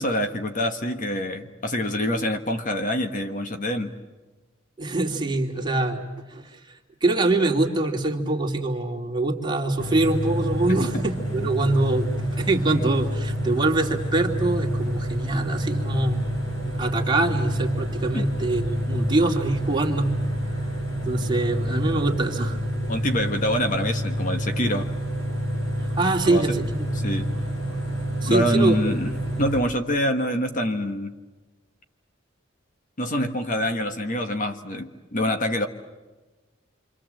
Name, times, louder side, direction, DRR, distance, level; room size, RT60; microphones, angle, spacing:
voice 1, 0.0-3.9 10.9-11.0 18.1-18.3 22.9-24.9 26.2-26.6 26.9-27.3 28.3-29.1 29.4-31.1 33.0-35.7, left 1 dB, 40° left, 6 dB, 1.4 m, -26 dB
voice 2, 4.8-6.0 6.3-6.5 7.0-16.3 16.8-20.1 21.0-22.6 25.8-26.9 28.2-28.8, right 2 dB, 25° right, 0 dB, 2.6 m, -24 dB
sound 1, 9.8-29.6, equal, 80° left, 6.3 m, -28 dB
28.0 x 25.5 x 7.7 m, 1.2 s
head